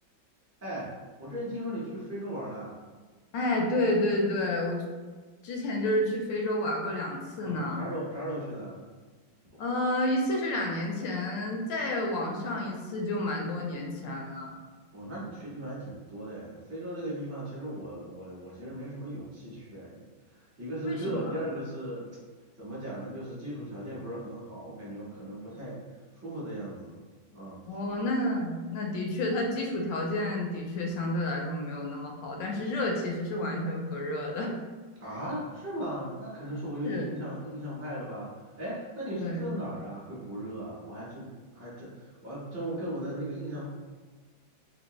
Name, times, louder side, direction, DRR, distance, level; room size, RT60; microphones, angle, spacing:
voice 1, 0.6-0.9 1.2-2.8 7.4-8.9 14.9-20.1 20.3-22.1 22.6-25.8 26.1-27.0 27.3-27.6 35.0-38.3 38.6-43.7, right 1 dB, 25° right, -8 dB, 0.3 m, -37 dB
voice 2, 3.3-4.8 5.4-7.8 9.6-14.6 20.8-21.4 27.7-34.6 36.8-37.1 39.1-39.5, left 1 dB, 75° left, 0 dB, 1.2 m, -30 dB
3.4 x 2.7 x 3.0 m, 1.4 s
omnidirectional pair, 2.1 m